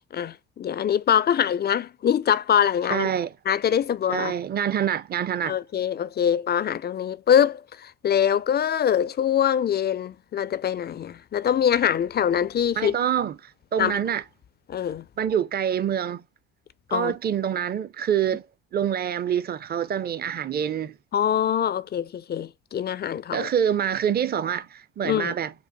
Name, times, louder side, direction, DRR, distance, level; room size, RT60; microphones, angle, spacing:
voice 1, 0.1-3.1 3.5-4.4 5.5-13.0 13.8-14.0 14.7-15.1 16.9-17.1 21.1-23.5 25.0-25.3, left 9 dB, 30° left, 0.4 m, -24 dB
voice 2, 2.9-3.3 4.1-5.6 12.8-14.2 15.2-16.2 16.9-18.5 18.7-21.0 23.3-25.5, right 9 dB, 25° right, 0.5 m, -26 dB
5.3 x 2.1 x 4.0 m
hypercardioid pair, 55°, 36 cm